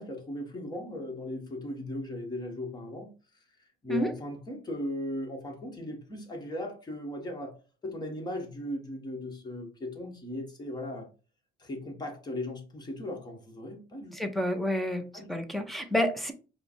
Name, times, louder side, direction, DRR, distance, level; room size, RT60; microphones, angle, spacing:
voice 1, 0.0-3.1 3.8-7.6 7.8-11.1 11.6-14.2 15.1-15.3, left 1 dB, 25° left, 1.5 m, -37 dB
voice 2, 14.1-15.0 15.3-16.3, equal, ahead, 0.8 m, -29 dB
5.0 x 2.3 x 4.5 m
cardioid pair, 110°, 17 cm